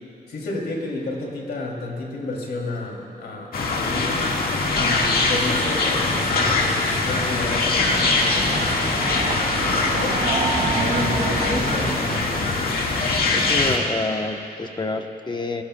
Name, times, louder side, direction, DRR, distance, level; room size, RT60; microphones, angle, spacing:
voice 1, 0.3-4.2 4.7-10.2 10.7-12.5, left 2 dB, 85° left, -1 dB, 2.7 m, -31 dB
sound 1, 3.5-13.8, left 3 dB, 70° left, 1.7 m, -22 dB
Train, 7.4-12.3, right 3 dB, 55° right, 2.5 m, -28 dB
voice 2, 13.3-15.6, left 3 dB, 30° left, 5 dB, 0.9 m, -28 dB
28.0 x 16.0 x 2.3 m, 2.9 s
cardioid pair, 100°, 16 cm